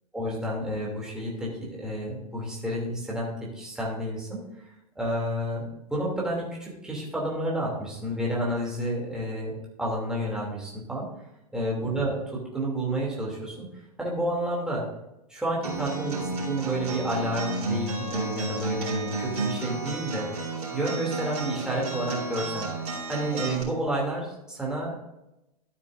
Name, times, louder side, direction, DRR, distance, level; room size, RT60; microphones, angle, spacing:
voice 1, 0.1-4.4 4.9-11.1 11.5-13.7 14.0-14.9 15.3-20.3 20.7-22.7 23.1-25.0, right 1 dB, 5° right, -4 dB, 2.8 m, -30 dB
Acoustic guitar, 15.6-23.6, right 3 dB, 60° right, 4.1 m, -32 dB
12.0 x 9.5 x 2.6 m, 0.88 s
figure-of-eight pair, 95°, 21 cm